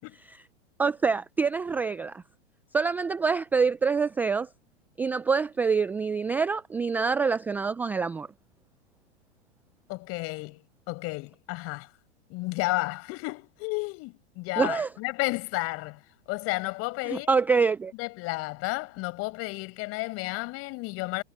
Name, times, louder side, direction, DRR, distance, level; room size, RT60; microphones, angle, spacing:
voice 1, 0.8-2.2 2.7-4.5 5.0-8.3 14.6-14.9 17.1-17.9, right 5 dB, 5° right, 0.3 m, -26 dB
voice 2, 9.9-11.9 12.3-16.0 16.3-17.3 18.0-21.2, left 24 dB, 45° left, 6.7 m, -32 dB
hypercardioid pair, 115°, 34 cm